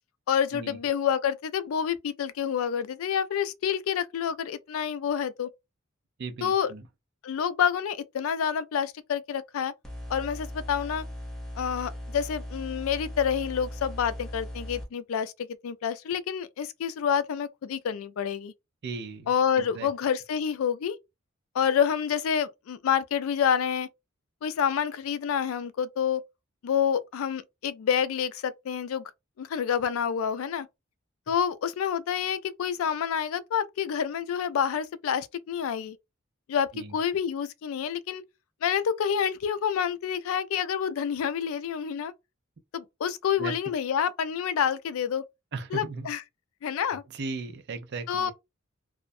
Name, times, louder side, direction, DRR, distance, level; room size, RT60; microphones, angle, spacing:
voice 1, 0.3-5.5 6.4-6.7 7.2-9.7 10.1-11.0 11.6-15.3 15.6-18.5 19.3-21.0 21.5-23.9 24.4-26.2 26.6-29.1 29.4-30.7 31.3-36.0 36.5-38.2 38.6-42.1 42.7-45.3 45.7-46.2 46.6-47.0 48.1-48.3, left 8 dB, 85° left, 0.3 m, -28 dB
voice 2, 6.2-6.8 18.8-19.3 19.6-19.9 36.7-37.0 43.4-43.5 45.5-46.1 47.1-48.3, right 4 dB, 55° right, 0.5 m, -36 dB
sound 1, 9.8-14.8, left 1 dB, ahead, 0.6 m, -38 dB
2.3 x 2.1 x 2.6 m
head